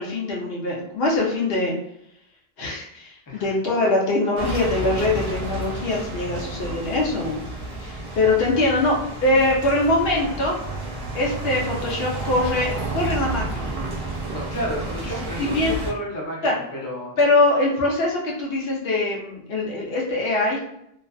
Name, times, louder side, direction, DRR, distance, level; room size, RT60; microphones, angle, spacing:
voice 1, 0.0-1.7 2.6-7.4 7.8-10.6 11.1-13.7 15.4-15.7 16.4-16.5 17.2-20.6, left 2 dB, 75° left, -2 dB, 0.9 m, -23 dB
sound 1, 4.4-15.9, right 2 dB, 70° right, 0.8 m, -31 dB
voice 2, 14.3-17.2, equal, 25° left, -3 dB, 0.5 m, -31 dB
2.5 x 2.3 x 2.3 m, 0.76 s
omnidirectional pair, 1.0 m